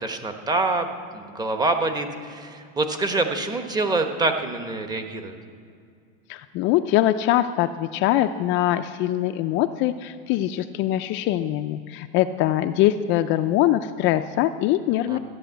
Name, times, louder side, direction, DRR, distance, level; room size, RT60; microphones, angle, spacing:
voice 1, 0.0-5.4 15.1-15.2, right 2 dB, 15° right, 6 dB, 1.0 m, -26 dB
voice 2, 6.3-15.2, left 13 dB, 40° left, 9 dB, 0.4 m, -23 dB
14.0 x 10.5 x 7.9 m, 2.3 s
supercardioid pair, 145°, 29 cm